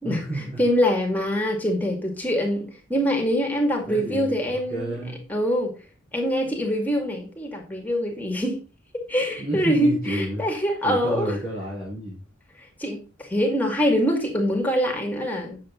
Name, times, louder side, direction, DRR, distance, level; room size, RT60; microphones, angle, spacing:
voice 1, 0.0-0.6 3.8-5.2 9.4-10.6 10.8-12.2, right 1 dB, 45° right, 4.7 m, -31 dB
voice 2, 0.6-5.0 5.3-5.7 6.1-8.6 9.1-11.4 12.8-15.6, equal, 10° left, 2.2 m, -24 dB
9.5 x 7.2 x 3.8 m
head